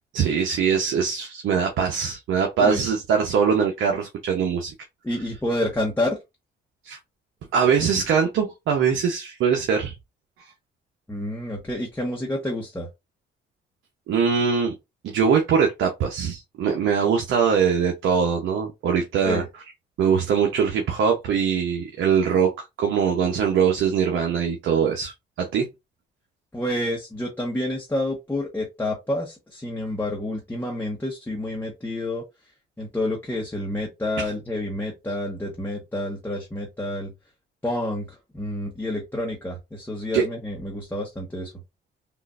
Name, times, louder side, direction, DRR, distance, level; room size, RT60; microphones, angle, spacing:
voice 1, 0.1-4.7 6.8-7.0 7.5-9.9 14.1-14.7 15.0-19.4 20.0-25.7 34.2-34.3 40.1-40.2, right 7 dB, 75° right, 0.8 m, -22 dB
voice 2, 5.0-6.2 11.1-12.9 19.2-19.4 26.5-32.2 32.8-37.1 37.6-41.5, left 1 dB, 10° left, 1.0 m, -29 dB
3.6 x 2.5 x 2.4 m
cardioid pair, 90°, 20 cm